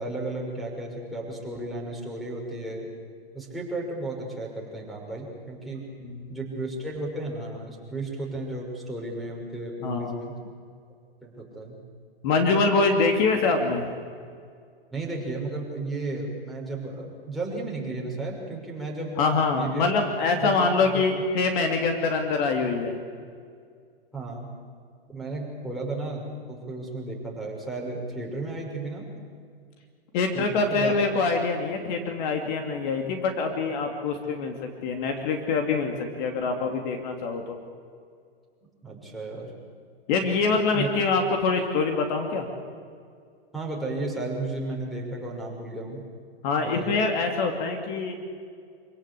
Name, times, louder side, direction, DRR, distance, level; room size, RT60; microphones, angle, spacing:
voice 1, 0.0-2.9 3.3-5.8 6.3-10.3 11.2-11.8 14.9-19.2 19.6-19.9 20.4-20.6 20.8-21.0 24.1-24.5 25.1-29.1 30.3-31.0 38.8-39.5 40.5-40.9 43.5-46.0 46.6-47.0, right 2 dB, ahead, 0 dB, 6.0 m, -34 dB
voice 2, 6.0-6.4 9.8-10.3 12.2-13.9 19.2-23.0 30.1-34.5 34.8-37.6 40.1-42.5 46.4-48.1, left 4 dB, 50° left, 4 dB, 3.0 m, -25 dB
26.5 x 17.5 x 8.6 m, 2.2 s
hypercardioid pair, 125°, 30 cm